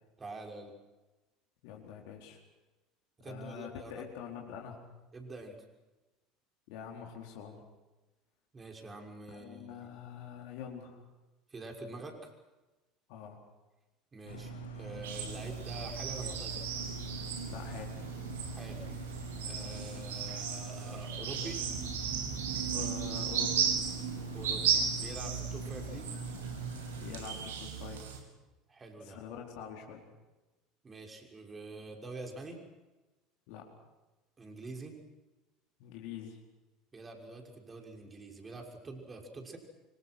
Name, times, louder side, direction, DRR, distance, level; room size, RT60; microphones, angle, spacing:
voice 1, 0.2-0.7 3.2-4.0 5.1-5.6 8.5-9.8 11.5-12.3 14.1-16.7 18.5-18.9 19.4-21.6 24.3-26.2 28.7-29.2 30.8-32.6 34.4-35.0 36.9-39.6, right 2 dB, 25° right, 3 dB, 6.0 m, -46 dB
voice 2, 1.6-2.4 3.2-4.8 6.7-7.6 9.3-11.0 13.1-13.4 17.5-18.0 22.6-23.7 27.0-28.1 29.0-30.0 33.5-33.7 35.8-36.4, left 8 dB, 60° left, 0 dB, 4.4 m, -45 dB
sound 1, 14.3-27.1, right 3 dB, 80° left, 3.7 m, -43 dB
sound 2, 15.0-28.2, right 7 dB, 70° right, 4.3 m, -36 dB
26.5 x 25.5 x 6.3 m, 1.1 s
figure-of-eight pair, 70°, 0 cm